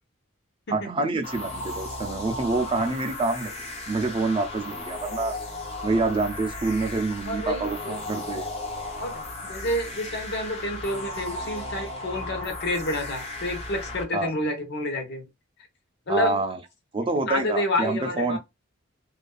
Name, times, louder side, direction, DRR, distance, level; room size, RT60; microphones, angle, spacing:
voice 1, 0.7-3.5 3.9-5.3 5.8-8.5 14.1-14.3 16.1-16.6 16.9-18.4, right 3 dB, 25° right, 0.4 m, -27 dB
sound 1, 1.2-14.0, left 2 dB, 35° left, 0.7 m, -35 dB
voice 2, 7.3-8.0 9.0-15.2 16.1-16.4 17.2-18.4, left 1 dB, 55° left, 0.8 m, -29 dB
2.5 x 2.3 x 2.3 m
head